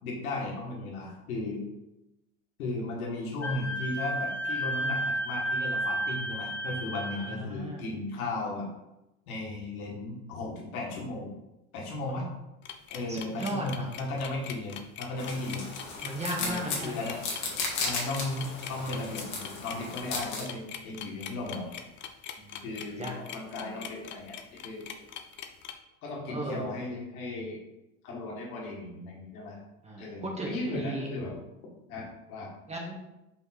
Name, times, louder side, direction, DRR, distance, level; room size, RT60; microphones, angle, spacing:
voice 1, 0.0-1.7 2.6-8.7 9.3-11.3 11.7-12.3 12.9-15.6 16.4-17.2 17.8-21.8 22.6-24.9 26.0-27.6 28.0-29.6 30.0-31.4 31.9-32.5, left 2 dB, 75° left, -2 dB, 2.1 m, -36 dB
Wind instrument woodwind instrument, 3.4-7.4, right 1 dB, 5° left, 1.8 m, -32 dB
voice 2, 7.1-7.9 12.1-12.2 13.1-13.9 16.0-16.9 22.4-22.7 23.0-23.1 26.3-26.9 29.8-31.1 32.7-32.9, right 1 dB, 15° right, -1 dB, 1.5 m, -36 dB
sound 1, 12.6-25.7, left 9 dB, 25° left, 0.5 m, -42 dB
sound 2, 15.2-20.4, left 4 dB, 45° left, 1.9 m, -35 dB
5.2 x 4.7 x 4.3 m, 0.93 s
hypercardioid pair, 115°, 43 cm